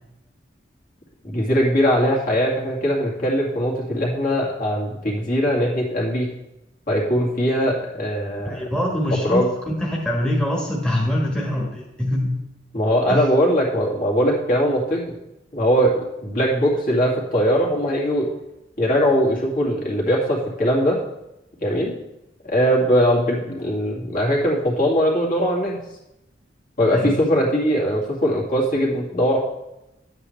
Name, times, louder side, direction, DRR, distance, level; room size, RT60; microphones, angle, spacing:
voice 1, 1.2-6.3 6.9-8.6 9.1-9.5 12.7-15.1 15.5-18.3 18.8-21.0 21.6-21.9 22.4-25.8 26.8-29.4, equal, 50° left, -3 dB, 2.2 m, -20 dB
voice 2, 8.4-9.4 9.8-12.4 13.1-13.2 26.9-27.1, left 1 dB, 5° left, -3 dB, 1.3 m, -23 dB
10.5 x 8.2 x 3.3 m, 0.91 s
head